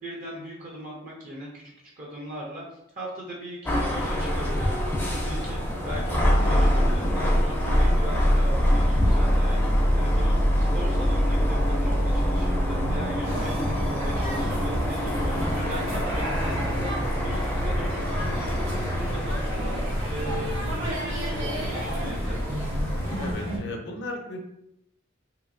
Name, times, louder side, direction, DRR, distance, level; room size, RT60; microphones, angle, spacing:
voice 1, 0.0-1.6 2.0-16.9 17.2-19.8 20.1-22.5, right 1 dB, 45° right, -3 dB, 0.6 m, -39 dB
sound 1, 3.7-23.3, equal, 10° left, 0.4 m, -25 dB
voice 2, 12.8-13.4 23.2-24.4, left 2 dB, 60° left, 2 dB, 0.5 m, -36 dB
sound 2, 13.2-23.6, equal, 85° right, 1.1 m, -32 dB
2.9 x 2.6 x 2.6 m, 0.80 s
head